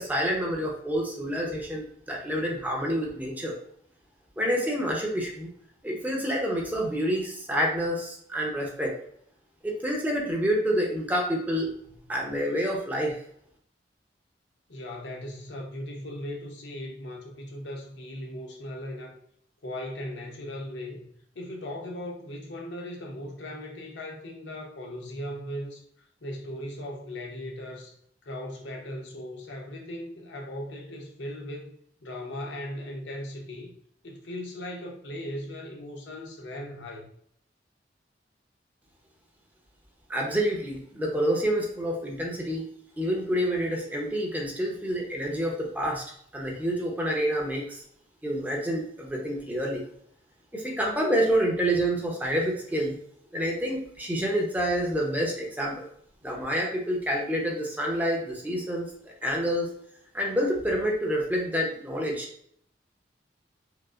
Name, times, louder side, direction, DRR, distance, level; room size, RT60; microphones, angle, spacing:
voice 1, 0.0-3.5 4.4-5.5 5.8-8.9 9.6-11.7 12.1-13.2 40.1-42.7 43.0-46.0 46.3-47.8 48.2-49.8 50.5-52.9 53.3-55.8 56.2-59.7 60.1-62.2, equal, 10° right, -1 dB, 0.7 m, -28 dB
voice 2, 14.7-19.2 19.6-21.1 21.3-25.8 26.2-28.0 28.2-33.7 34.0-37.1, left 1 dB, 75° left, 1 dB, 0.8 m, -38 dB
4.6 x 2.0 x 2.4 m, 0.66 s
head